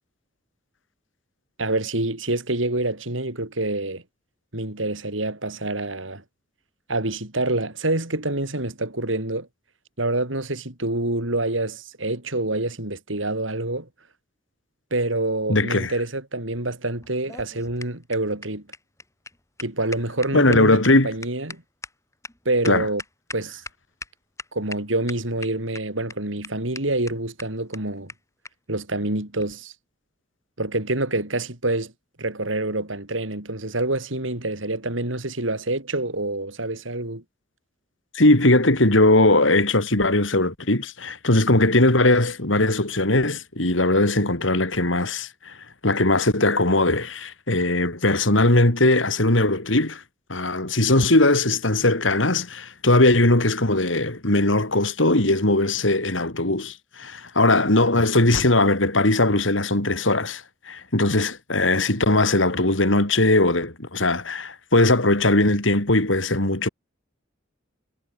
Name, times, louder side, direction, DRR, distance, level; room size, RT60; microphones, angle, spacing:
voice 1, 1.6-4.0 4.5-6.2 6.9-9.5 10.0-13.9 14.9-18.6 19.6-21.6 22.5-23.0 23.3-23.6 24.5-28.1 28.7-29.7 30.6-31.9 32.2-37.2, right 2 dB, 85° right, 5.2 m, -26 dB
voice 2, 15.5-15.9 20.3-21.1 22.6-22.9 38.1-45.6 45.8-50.0 50.3-66.7, left 2 dB, 80° left, 4.0 m, -20 dB
sound 1, 17.0-23.7 24.0-24.1 24.4-24.8 25.1-25.8 26.1-26.2 26.4-26.5 26.7-26.8 27.1-27.2 27.4-27.5 27.7-27.8 28.1-28.2 28.4-28.5 29.4-29.5, left 3 dB, 15° left, 5.2 m, -38 dB
head